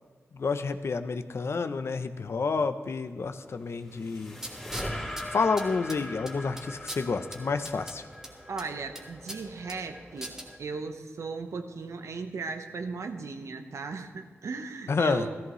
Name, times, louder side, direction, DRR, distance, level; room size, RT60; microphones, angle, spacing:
voice 1, 0.3-4.4 5.3-8.0 14.9-15.3, left 4 dB, 55° left, 10 dB, 0.6 m, -29 dB
sound 1, 3.5-8.9, left 1 dB, 5° left, 2.8 m, -40 dB
sound 2, 4.3-10.6, right 1 dB, 10° right, 1.4 m, -44 dB
voice 2, 8.5-15.3, right 4 dB, 75° right, 7 dB, 0.9 m, -37 dB
15.5 x 14.0 x 3.1 m, 1.5 s
wide cardioid pair, 120°, 5 cm